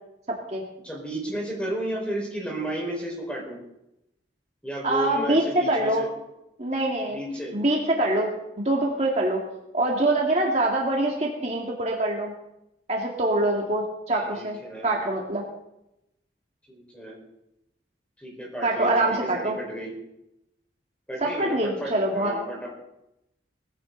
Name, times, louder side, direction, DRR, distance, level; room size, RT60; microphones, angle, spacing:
voice 1, 0.8-3.6 4.6-6.1 7.1-7.5 14.2-15.0 16.7-17.2 18.2-19.9 21.1-22.7, right 1 dB, 5° left, -1 dB, 4.8 m, -33 dB
voice 2, 4.8-6.1 6.6-7.2 7.5-8.3 8.6-9.4 9.7-12.3 12.9-14.6 14.8-15.4 18.6-19.6 21.2-22.3, right 1 dB, 35° right, -1 dB, 2.2 m, -24 dB
19.0 x 15.5 x 4.0 m, 0.86 s
head